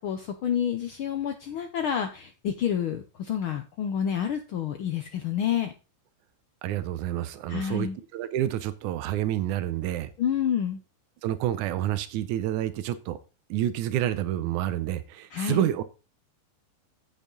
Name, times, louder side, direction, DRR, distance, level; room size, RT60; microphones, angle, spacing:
voice 1, 0.0-5.7 7.5-8.0 10.2-10.8 15.3-15.7, left 8 dB, 80° left, 7 dB, 1.1 m, -29 dB
voice 2, 6.6-10.1 11.2-13.2 13.5-15.8, right 12 dB, 90° right, 13 dB, 2.2 m, -28 dB
8.8 x 8.3 x 3.9 m, 0.30 s
omnidirectional pair, 3.4 m